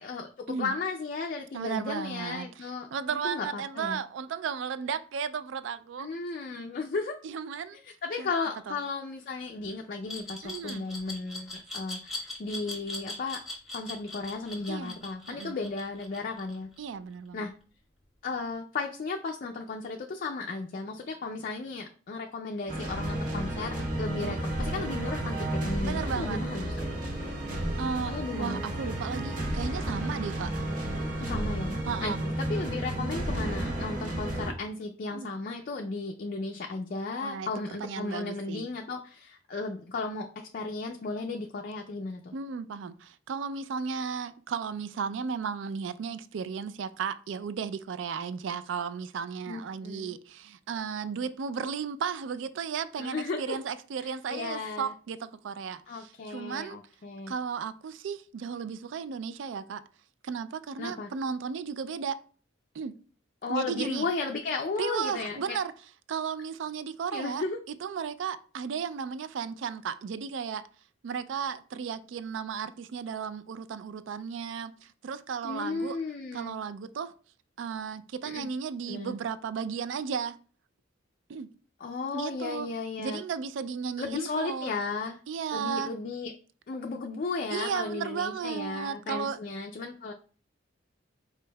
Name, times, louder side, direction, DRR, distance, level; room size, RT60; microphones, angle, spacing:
voice 1, 0.0-2.9 3.2-4.0 6.0-7.2 7.8-13.4 13.7-16.7 17.3-17.5 18.2-26.8 28.1-28.6 31.2-31.7 32.0-42.3 49.5-50.1 53.0-53.6 54.0-54.9 55.9-57.3 60.8-61.1 63.4-65.6 67.1-67.6 75.4-76.6 78.3-78.5 78.9-79.1 81.8-83.2 84.0-85.2 85.5-86.3 86.7-90.1, left 3 dB, 45° left, 0.4 m, -35 dB
voice 2, 1.5-6.6 7.2-7.8 8.2-8.3 8.7-8.8 10.4-10.8 14.7-15.0 15.3-15.6 16.8-17.5 24.1-24.4 25.8-26.4 27.5-30.5 31.9-32.2 35.1-35.3 37.2-37.5 37.8-38.7 42.3-56.8 57.3-59.8 60.2-62.2 62.7-62.9 63.5-64.1 64.8-65.7 66.1-67.4 67.8-70.6 71.0-76.0 76.3-77.1 77.6-80.4 81.3-81.5 82.1-82.7 83.0-84.7 85.3-85.9 87.5-89.4, right 6 dB, 65° right, 0.3 m, -34 dB
Glass, 10.1-16.9, left 2 dB, ahead, 1.1 m, -40 dB
sound 1, 22.7-34.5, right 1 dB, 45° right, 1.0 m, -32 dB
5.1 x 4.4 x 2.2 m
head